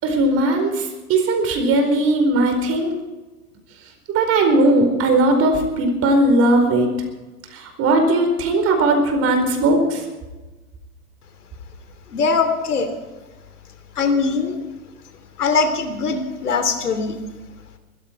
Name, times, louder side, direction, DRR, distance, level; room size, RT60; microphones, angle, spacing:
voice 1, 0.0-2.9 4.1-6.9 7.5-10.0, right 2 dB, 30° right, 5 dB, 4.6 m, -18 dB
voice 2, 12.1-12.9 13.9-14.6 15.4-17.2, left 4 dB, 80° left, 9 dB, 3.0 m, -21 dB
20.5 x 14.5 x 4.6 m, 1.2 s
hypercardioid pair, 120°, 45 cm